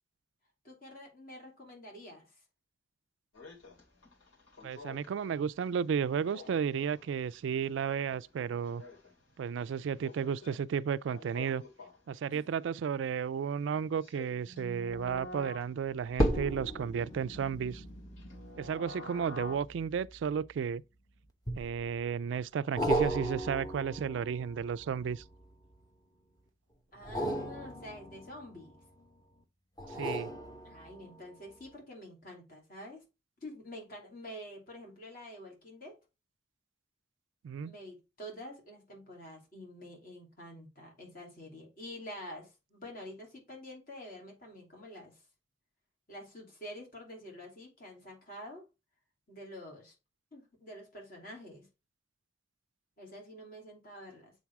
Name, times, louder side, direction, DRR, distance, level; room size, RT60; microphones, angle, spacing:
voice 1, 0.6-2.3 12.3-12.5 26.9-28.8 30.6-33.0 33.4-36.0 37.6-45.2 46.1-48.7 49.3-49.9 50.3-51.7 53.0-54.3, left 1 dB, 45° left, 3.0 m, -47 dB
sound 1, 3.3-5.2 5.6-5.7 6.1-8.2 8.5-9.1 10.0-10.6 11.1-12.1 13.9-15.7 16.1-19.6, left 2 dB, 80° left, 2.5 m, -48 dB
voice 2, 4.6-8.8 9.4-11.6 12.1-17.8 18.6-20.8 21.6-25.2 30.0-30.3 37.4-37.7, right 7 dB, 70° right, 0.3 m, -33 dB
sound 2, 14.9-15.2 16.1-20.8 21.5-22.1 22.8-25.8 27.0-29.0 29.8-31.2 31.7-31.8, right 1 dB, 20° left, 1.0 m, -36 dB
7.3 x 3.9 x 4.6 m
head